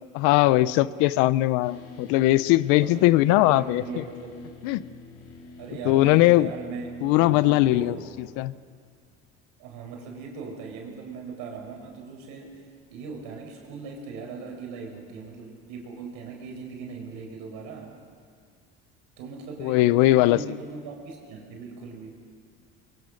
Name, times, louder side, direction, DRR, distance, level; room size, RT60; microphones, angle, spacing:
voice 1, 0.2-4.0 4.6-4.9 5.8-6.5 7.0-8.5 19.6-20.4, left 17 dB, 85° left, 19 dB, 0.7 m, -20 dB
sound 1, 1.6-8.3, left 4 dB, 55° left, 3.5 m, -47 dB
voice 2, 2.8-4.3 5.6-8.0 9.6-12.6 12.9-17.9 19.2-22.1, right 4 dB, 80° right, 2 dB, 4.9 m, -39 dB
23.5 x 22.5 x 6.5 m, 2.2 s
cardioid pair, 105°, 29 cm